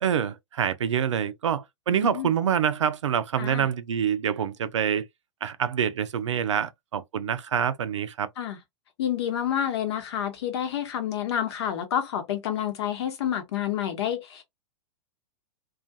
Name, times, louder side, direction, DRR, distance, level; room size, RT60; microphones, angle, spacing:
voice 1, 0.0-5.1 5.4-8.3, right 8 dB, 75° right, 0.5 m, -26 dB
voice 2, 1.9-2.3 3.4-3.7 8.4-8.6 9.0-14.4, left 10 dB, 60° left, 0.9 m, -29 dB
2.4 x 2.3 x 2.6 m
hypercardioid pair, 110°, 15 cm